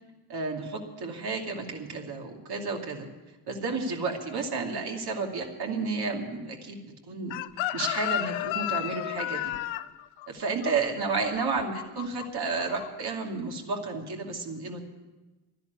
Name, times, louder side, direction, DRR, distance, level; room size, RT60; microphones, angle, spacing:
voice 1, 0.3-3.1 3.5-7.3 7.7-9.4 10.3-14.8, right 4 dB, 55° right, 1 dB, 2.6 m, -31 dB
Chicken rooster, 7.3-12.3 12.5-12.9, left 14 dB, 80° left, 0.6 m, -32 dB
12.0 x 10.5 x 9.3 m, 1.2 s
supercardioid pair, 65°, 45 cm